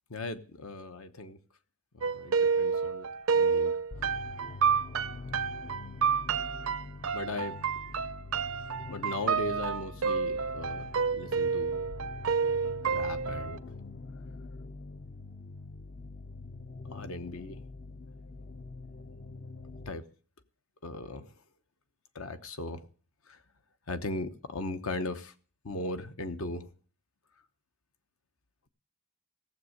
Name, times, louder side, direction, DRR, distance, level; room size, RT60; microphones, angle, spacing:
voice 1, 0.1-1.4 1.9-3.1 3.3-3.7 7.1-7.6 8.9-11.8 12.8-13.6 16.9-17.6 19.9-20.0 20.8-21.3 22.1-22.8 23.3-23.4 23.9-25.3 25.6-26.7, left 2 dB, 70° left, 1.0 m, -38 dB
sound 1, 2.0-13.6, right 6 dB, 65° right, 0.5 m, -29 dB
sound 2, 3.9-19.9, left 3 dB, 40° left, 0.5 m, -44 dB
16.0 x 7.3 x 6.5 m
head